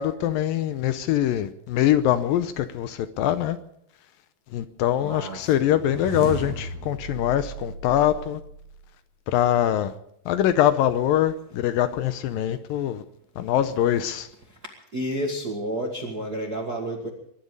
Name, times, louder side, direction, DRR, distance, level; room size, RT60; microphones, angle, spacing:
voice 1, 0.0-3.6 4.5-8.4 9.3-9.9 10.3-13.0 13.4-14.3, left 11 dB, 75° left, 2.3 m, -23 dB
voice 2, 5.0-5.5 12.5-12.6 14.5-14.6 14.9-17.1, right 1 dB, 35° right, 1.7 m, -30 dB
sound 1, 5.6-8.9, right 5 dB, 55° right, 2.3 m, -36 dB
22.5 x 11.5 x 5.4 m
omnidirectional pair, 4.5 m